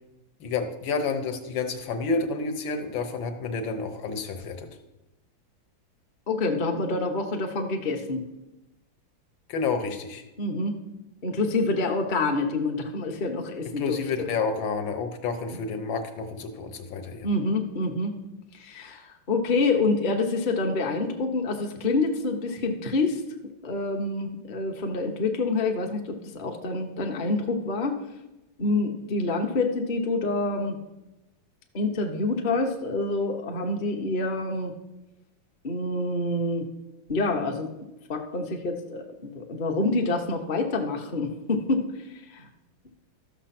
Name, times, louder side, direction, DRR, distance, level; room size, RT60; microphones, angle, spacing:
voice 1, 0.4-4.7 9.5-10.2 13.8-17.3, left 4 dB, 70° left, 6 dB, 1.7 m, -30 dB
voice 2, 6.3-8.2 10.4-10.8 11.2-14.3 17.2-18.1 18.5-23.2 23.6-28.0 28.6-30.8 31.7-34.7 35.6-36.7 37.1-37.7 38.1-39.0 39.3-41.9 42.3-42.5, left 3 dB, 35° left, 3 dB, 0.8 m, -27 dB
13.0 x 6.6 x 5.9 m, 0.99 s
omnidirectional pair, 2.2 m